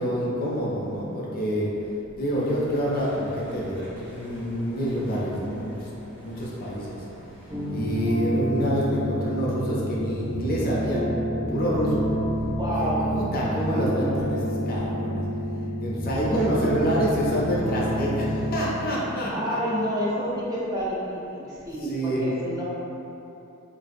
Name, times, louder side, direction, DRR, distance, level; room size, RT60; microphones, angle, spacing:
voice 1, 0.0-1.7 2.1-5.9 6.2-7.0 7.7-11.1 11.3-12.0 12.8-15.2 15.8-19.6 21.8-22.2, equal, 45° left, -5 dB, 0.5 m, -27 dB
sound 1, 2.3-8.2, equal, 55° right, 1.3 m, -46 dB
sound 2, 7.5-18.6, equal, 35° right, 1.0 m, -28 dB
voice 2, 12.6-13.1 16.3-16.5 19.3-22.6, equal, 20° right, -8 dB, 0.5 m, -29 dB
3.2 x 2.5 x 2.4 m, 2.9 s
head